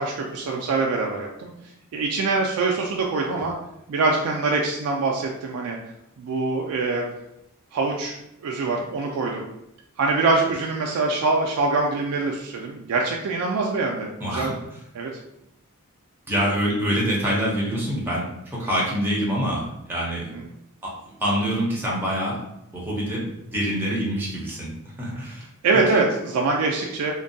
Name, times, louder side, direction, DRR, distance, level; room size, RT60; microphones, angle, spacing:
voice 1, 0.0-1.5 1.9-3.5 3.9-5.8 6.2-7.1 7.7-9.4 10.0-14.5 14.9-15.1 20.3-20.4 25.6-27.1, right 3 dB, 75° right, 0 dB, 0.3 m, -24 dB
voice 2, 14.2-14.5 16.3-20.3 20.8-20.9 21.2-22.4 22.7-24.7 25.0-25.4 25.9-26.0, equal, 10° right, -5 dB, 0.6 m, -25 dB
2.5 x 2.2 x 2.6 m, 0.82 s
head